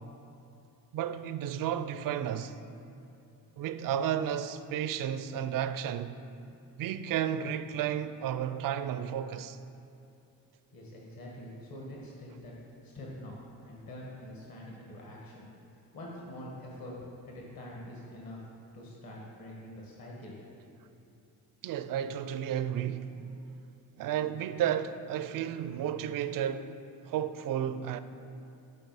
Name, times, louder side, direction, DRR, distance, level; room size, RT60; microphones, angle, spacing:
voice 1, 0.9-2.6 3.6-6.2 6.8-9.6 21.6-23.1 24.0-26.8 27.1-28.0, right 10 dB, 45° right, 0.4 m, -32 dB
voice 2, 10.7-12.5 12.8-13.3 13.6-15.5 15.9-16.9 17.2-18.4 18.7-20.3, left 1 dB, 45° left, 1.6 m, -45 dB
9.3 x 4.1 x 4.1 m
hypercardioid pair, 45°, 48 cm